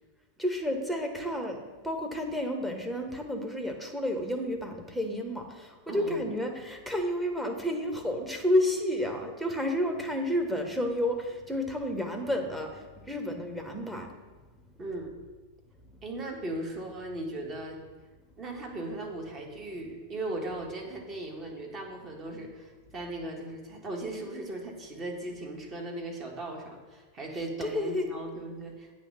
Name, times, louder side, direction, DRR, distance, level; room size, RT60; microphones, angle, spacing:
voice 1, 0.4-14.1 27.6-28.1, left 1 dB, 5° right, 3 dB, 1.0 m, -31 dB
voice 2, 5.9-6.3 14.8-15.1 16.0-17.8 18.4-28.9, right 2 dB, 25° right, 1 dB, 1.4 m, -38 dB
8.3 x 3.2 x 5.5 m, 1.3 s
figure-of-eight pair, 90°, 0 cm